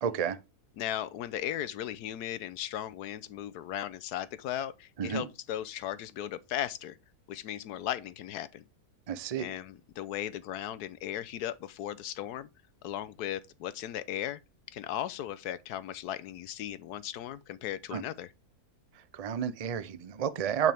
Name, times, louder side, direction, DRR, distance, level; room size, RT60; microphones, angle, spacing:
voice 1, 0.0-0.4 5.0-5.3 9.1-9.5 17.9-18.0 19.1-20.7, right 8 dB, 80° right, 0.3 m, -31 dB
voice 2, 0.8-7.0 7.3-8.6 9.4-12.5 12.8-14.4 14.7-18.3, left 11 dB, 80° left, 1.2 m, -37 dB
9.1 x 5.5 x 3.5 m
omnidirectional pair, 1.7 m